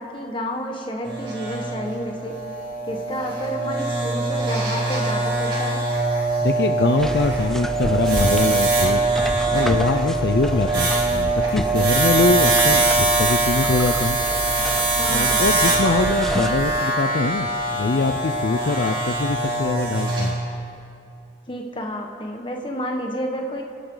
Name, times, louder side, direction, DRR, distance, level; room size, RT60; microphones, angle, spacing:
voice 1, 0.0-2.4 2.8-5.8 15.0-15.4 21.5-23.6, equal, 25° left, 2 dB, 1.5 m, -30 dB
sound 1, 1.0-20.3, right 2 dB, 30° right, 4.9 m, -22 dB
voice 2, 6.4-9.0 9.5-14.2 15.1-20.3, left 3 dB, 60° left, 7 dB, 0.5 m, -23 dB
sound 2, 7.0-16.8, equal, ahead, 0.3 m, -31 dB
28.5 x 12.0 x 4.0 m, 2.5 s
head